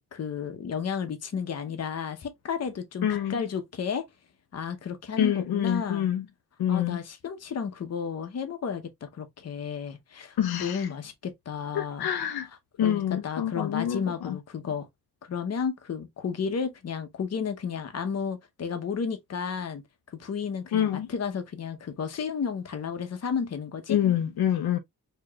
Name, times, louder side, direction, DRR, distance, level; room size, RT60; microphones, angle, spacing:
voice 1, 0.0-4.1 4.5-6.1 6.7-12.1 12.8-14.9 15.3-19.8 20.1-24.0, left 6 dB, 45° left, 0.8 m, -32 dB
voice 2, 3.0-3.4 5.2-6.2 6.6-7.0 10.4-10.9 11.7-12.5 12.8-14.4 20.7-21.1 23.9-24.8, left 10 dB, 80° left, 0.6 m, -26 dB
4.7 x 2.9 x 2.2 m
wide cardioid pair, 165°, 37 cm